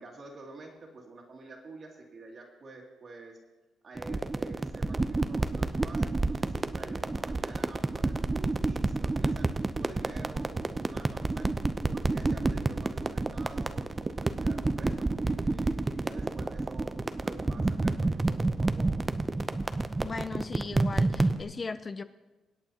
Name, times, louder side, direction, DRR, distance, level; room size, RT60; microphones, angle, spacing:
voice 1, 0.0-3.4 3.8-11.5 11.8-19.0, right 3 dB, 45° right, 0 dB, 2.5 m, -48 dB
sound 1, 4.0-21.4, right 2 dB, 20° right, 0.6 m, -29 dB
voice 2, 20.0-22.0, left 4 dB, 30° left, 11 dB, 0.4 m, -37 dB
24.5 x 8.8 x 2.9 m, 1.1 s
cardioid pair, 90°, 0 cm